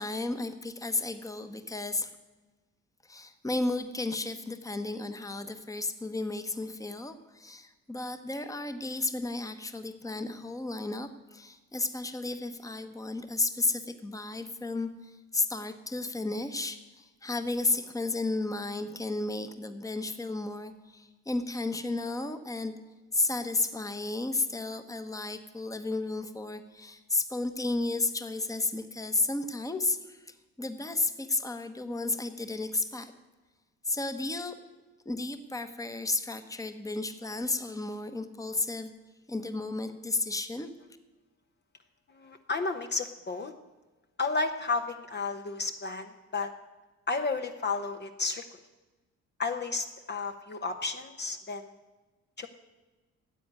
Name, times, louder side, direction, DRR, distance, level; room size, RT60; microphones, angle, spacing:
voice 1, 0.0-2.1 3.0-22.7 23.1-33.1 33.8-34.5 35.0-38.9 39.3-40.7, left 2 dB, 10° left, 9 dB, 1.0 m, -33 dB
voice 2, 42.1-43.5 44.2-46.5 47.1-48.4 49.4-51.7 52.4-52.5, left 3 dB, 35° left, 6 dB, 0.9 m, -32 dB
10.5 x 7.9 x 9.4 m, 1.2 s
cardioid pair, 90°, 30 cm